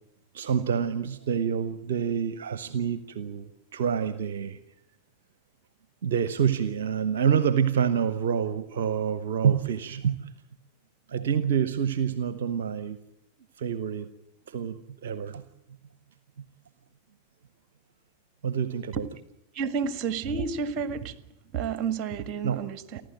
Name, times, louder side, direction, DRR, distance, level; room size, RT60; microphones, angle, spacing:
voice 1, 0.3-4.6 6.0-10.3 11.1-13.0 13.6-14.1 14.5-15.4 18.4-19.1 22.4-22.6, right 7 dB, 60° right, 14 dB, 0.9 m, -27 dB
voice 2, 19.5-21.1 21.5-23.0, right 6 dB, 35° right, 11 dB, 1.8 m, -30 dB
30.0 x 12.0 x 9.1 m, 0.84 s
figure-of-eight pair, 90°, 0 cm